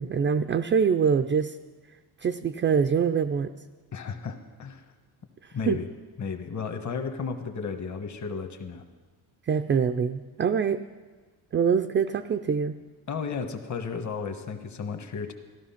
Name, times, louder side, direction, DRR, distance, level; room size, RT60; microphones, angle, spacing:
voice 1, 0.0-1.6 2.2-3.5 5.4-5.8 9.5-10.8 11.5-12.7, right 6 dB, 30° right, 8 dB, 0.4 m, -24 dB
voice 2, 3.9-4.9 5.5-5.9 6.2-8.8 13.1-15.3, left 5 dB, 40° left, 6 dB, 1.4 m, -33 dB
14.5 x 12.5 x 5.8 m, 1.4 s
cardioid pair, 110°, 42 cm